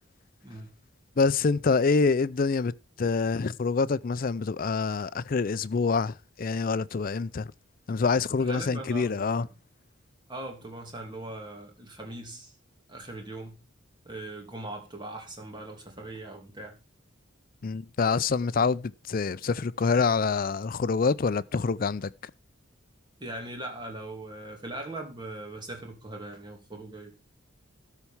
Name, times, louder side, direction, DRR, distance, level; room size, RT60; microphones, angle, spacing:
voice 1, 1.2-7.5 7.9-9.5 17.6-22.1, left 4 dB, 45° left, 0.4 m, -26 dB
voice 2, 8.4-9.5 10.3-12.5 12.9-13.6 14.0-16.8 23.2-27.1, right 2 dB, 20° right, 2.7 m, -40 dB
13.0 x 4.6 x 7.1 m
head